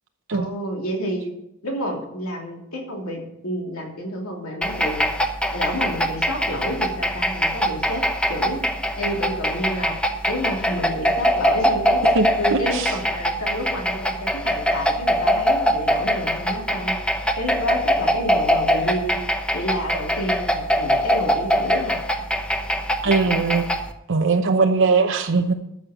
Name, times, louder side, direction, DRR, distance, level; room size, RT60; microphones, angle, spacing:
voice 1, 0.3-1.3 1.6-5.0 5.5-8.0 8.3-8.6 9.0-9.9 10.3-12.0 12.4-16.9 17.3-19.2 19.5-22.0, equal, 80° left, 0 dB, 3.0 m, -29 dB
sound 1, 4.6-23.9, equal, 5° left, 0.9 m, -23 dB
voice 2, 12.1-13.0 23.0-23.6 24.1-25.5, right 4 dB, 60° right, 5 dB, 0.8 m, -20 dB
13.5 x 6.6 x 6.5 m, 0.83 s
head